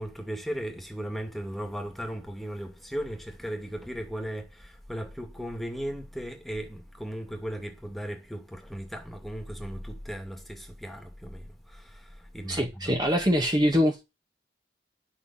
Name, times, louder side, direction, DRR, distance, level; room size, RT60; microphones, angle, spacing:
voice 1, 0.0-13.0, equal, ahead, 2.4 m, -37 dB
voice 2, 12.5-14.0, equal, 25° right, 1.8 m, -24 dB
11.0 x 7.2 x 8.7 m
head